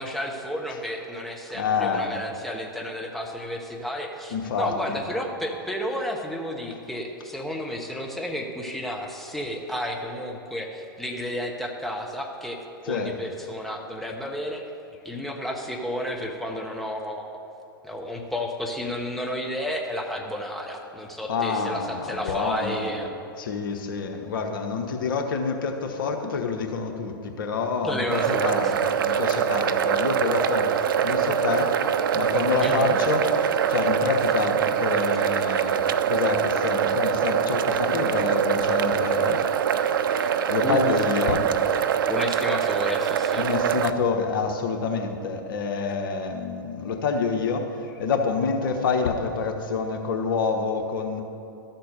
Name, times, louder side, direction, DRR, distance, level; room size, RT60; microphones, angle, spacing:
voice 1, 0.0-12.6 12.9-14.6 15.0-17.4 17.8-23.2 27.8-28.7 32.6-33.0 40.2-40.3 40.6-40.9 42.1-43.5, equal, ahead, 1 dB, 1.0 m, -32 dB
voice 2, 1.5-2.1 4.3-5.0 12.8-13.1 21.3-22.9 23.4-39.4 40.0-40.1 40.5-41.5 43.4-51.2, left 4 dB, 65° left, 4 dB, 1.1 m, -27 dB
sound 1, 28.1-43.9, right 8 dB, 65° right, 0.4 m, -24 dB
13.0 x 4.4 x 6.7 m, 2.6 s
hypercardioid pair, 105°, 12 cm